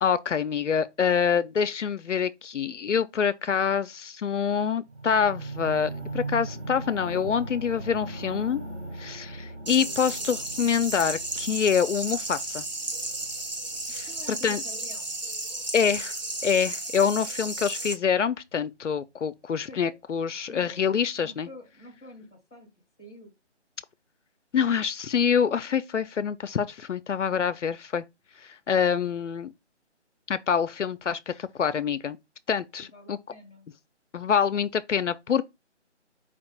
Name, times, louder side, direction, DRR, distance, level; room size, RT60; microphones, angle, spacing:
voice 1, 0.0-8.6 9.0-12.6 13.9-14.1 14.4-14.6 15.7-16.1 16.4-21.5 24.5-28.0 28.7-29.5 30.3-32.2 32.5-33.2 34.1-35.4, left 7 dB, 80° left, 0.5 m, -26 dB
sound 1, 4.9-15.0 15.7-15.8, right 2 dB, 90° right, 1.5 m, -39 dB
sound 2, 9.7-17.9, right 2 dB, 35° right, 0.7 m, -34 dB
voice 2, 13.9-15.2 19.6-19.9 20.5-22.7 23.0-23.3 32.8-33.7, left 1 dB, 5° left, 0.9 m, -47 dB
4.6 x 2.5 x 4.3 m
figure-of-eight pair, 160°, 36 cm